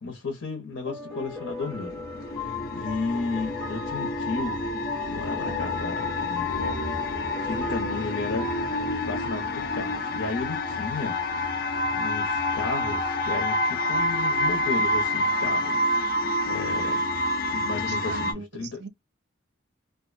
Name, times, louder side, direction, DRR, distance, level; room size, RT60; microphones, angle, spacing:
voice 1, 0.0-2.0 2.3-4.6 5.1-6.8 7.4-8.5 9.0-11.2 11.5-15.8 16.5-17.0 17.5-18.8, left 3 dB, 85° left, 0.9 m, -34 dB
sound 1, 0.9-10.1, left 3 dB, 10° left, 0.6 m, -39 dB
sound 2, 1.3-18.3, left 1 dB, 50° left, 0.5 m, -28 dB
voice 2, 17.9-18.9, right 4 dB, 55° right, 0.4 m, -38 dB
2.5 x 2.2 x 2.5 m
head